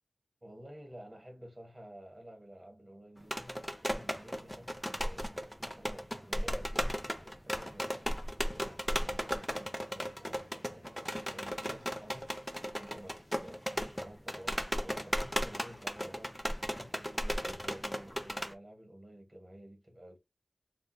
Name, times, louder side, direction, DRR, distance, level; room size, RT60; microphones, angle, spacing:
voice 1, 0.4-12.3 12.8-20.2, right 1 dB, 30° right, 1.2 m, -52 dB
sound 1, 3.2-18.5, equal, 5° left, 0.5 m, -36 dB
3.5 x 2.3 x 2.2 m
wide cardioid pair, 55°, 0 cm